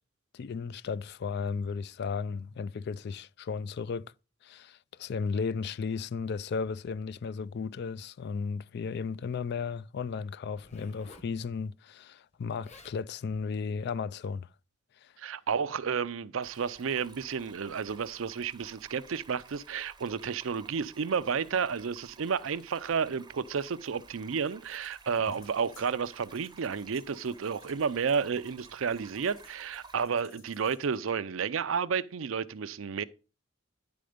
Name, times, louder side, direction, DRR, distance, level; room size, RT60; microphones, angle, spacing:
voice 1, 0.3-4.1 4.4-14.5 15.0-15.1, left 5 dB, 55° left, 0.3 m, -35 dB
Zipper (clothing), 10.5-11.3 12.3-12.4 12.6-13.0 13.7-13.9, left 2 dB, 35° left, 1.2 m, -53 dB
voice 2, 15.2-33.0, right 6 dB, 80° right, 0.5 m, -31 dB
Stream, 16.4-30.0, right 4 dB, 20° right, 0.7 m, -55 dB
sound 1, 24.2-31.2, left 7 dB, 70° left, 2.4 m, -62 dB
10.5 x 4.3 x 5.0 m
head